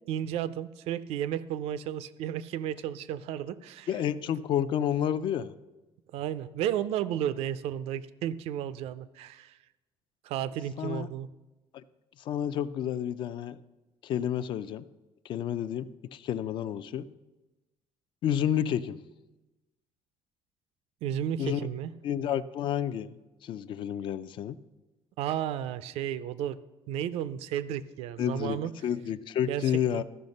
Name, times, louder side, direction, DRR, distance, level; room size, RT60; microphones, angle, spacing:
voice 1, 0.1-3.9 6.1-9.6 10.2-11.3 21.0-21.9 25.2-26.6 26.9-28.7 29.5-30.0, right 10 dB, 80° right, 15 dB, 0.5 m, -33 dB
voice 2, 3.9-5.5 10.8-11.1 11.7-11.8 12.2-13.6 14.0-14.8 15.2-17.1 18.2-19.0 21.4-21.7 22.0-23.1 23.4-24.6 28.2-28.6 28.8-30.0, left 9 dB, 50° left, 15 dB, 0.4 m, -30 dB
13.5 x 5.7 x 5.3 m, 1.1 s
cardioid pair, 155°, 10 cm